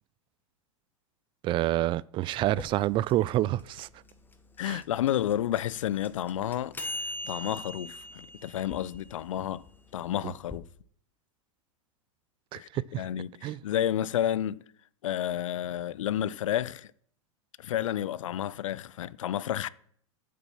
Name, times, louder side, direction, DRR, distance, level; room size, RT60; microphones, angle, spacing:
voice 1, 1.4-3.9 4.7-4.8 10.2-10.3 12.5-13.0 13.4-13.6, right 15 dB, 30° right, 0.4 m, -28 dB
sound 1, 2.4-10.6, left 1 dB, 10° left, 1.2 m, -42 dB
voice 2, 4.6-6.8 7.2-9.6 9.9-10.7 12.6-12.7 13.0-14.6 15.0-16.9 17.6-19.7, left 11 dB, 70° left, 0.5 m, -30 dB
8.6 x 6.8 x 7.5 m
hypercardioid pair, 95°, 17 cm